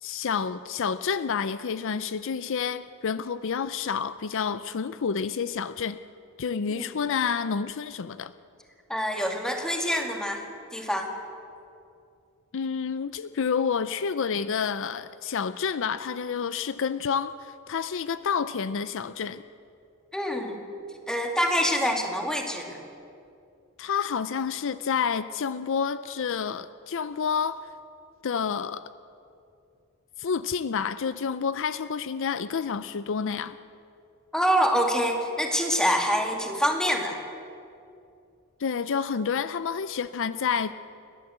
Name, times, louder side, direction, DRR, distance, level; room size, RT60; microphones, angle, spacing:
voice 1, 0.0-6.0 6.4-8.3 12.5-19.4 23.8-27.7 28.2-28.8 30.2-33.6 38.6-40.7, left 6 dB, 60° left, 14 dB, 0.5 m, -29 dB
voice 2, 8.9-10.4 10.7-11.1 20.1-20.6 21.1-22.8 34.3-37.2, equal, 5° left, 2 dB, 2.2 m, -25 dB
30.0 x 12.5 x 8.0 m, 2.6 s
head